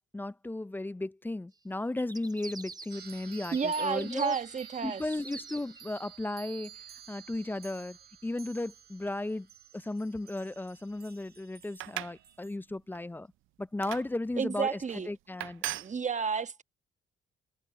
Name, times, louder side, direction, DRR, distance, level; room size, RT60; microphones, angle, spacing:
voice 1, 0.1-4.4 4.8-6.7 7.1-8.0 8.2-9.5 9.7-13.3 13.6-14.8 15.1-15.6, left 2 dB, 10° left, 0.4 m, -35 dB
sound 1, 2.0-3.2 3.5-5.8, right 3 dB, 20° right, 0.8 m, -46 dB
sound 2, 2.9-12.6, right 10 dB, 55° right, 4.9 m, -51 dB
voice 2, 3.5-5.0 14.4-15.1 15.7-16.6, right 5 dB, 35° right, 1.3 m, -31 dB
sound 3, 11.7-12.2 12.7-13.0 13.8-14.1 14.9-15.0 15.4-15.9, right 17 dB, 90° right, 0.5 m, -37 dB
cardioid pair, 90°, 20 cm